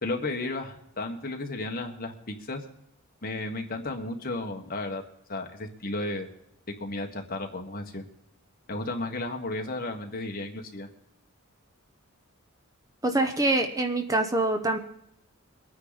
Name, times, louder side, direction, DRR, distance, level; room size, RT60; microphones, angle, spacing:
voice 1, 0.0-2.6 3.2-5.0 5.3-6.3 6.8-8.0 8.7-10.9, left 2 dB, 40° left, 3 dB, 1.6 m, -33 dB
voice 2, 13.0-14.8, right 2 dB, 15° right, 6 dB, 0.9 m, -25 dB
23.0 x 9.5 x 4.1 m, 0.73 s
head